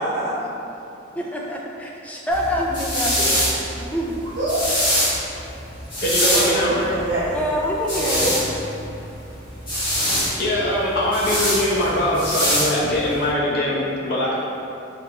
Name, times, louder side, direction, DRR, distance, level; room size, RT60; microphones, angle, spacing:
voice 1, 1.2-3.1 3.7-4.2 7.3-8.5, left 1 dB, 5° left, -2 dB, 0.3 m, -26 dB
sound 1, 2.3-13.3, equal, 25° left, 1.4 m, -24 dB
voice 2, 4.4-5.5 6.3-7.5 7.9-8.3, right 1 dB, 65° right, -10 dB, 1.2 m, -26 dB
voice 3, 6.0-6.7 10.4-14.3, left 1 dB, 55° left, -6 dB, 0.8 m, -22 dB
3.6 x 3.3 x 3.4 m, 2.7 s
head